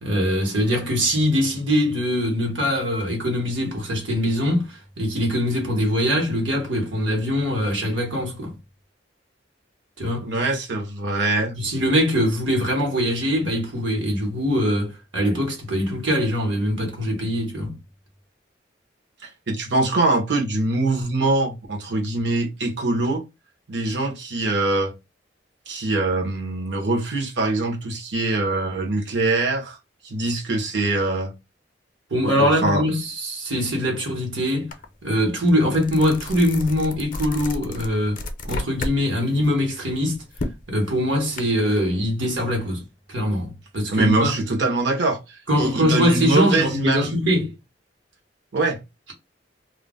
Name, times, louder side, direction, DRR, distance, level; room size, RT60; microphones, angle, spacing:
voice 1, 0.0-8.5 10.0-10.3 11.6-17.8 32.1-34.7 35.0-40.2 40.7-42.8 43.1-44.3 45.5-47.5, equal, 85° right, 1.2 m, -22 dB
voice 2, 10.2-11.6 19.2-23.2 23.7-24.9 25.7-29.8 30.0-31.3 32.4-32.9 43.9-47.1 48.5-48.8, right 2 dB, 65° right, 0.8 m, -23 dB
sound 1, 34.7-34.8 35.2-39.0 39.3-41.4, left 2 dB, 50° left, 0.5 m, -32 dB
2.4 x 2.0 x 3.5 m
head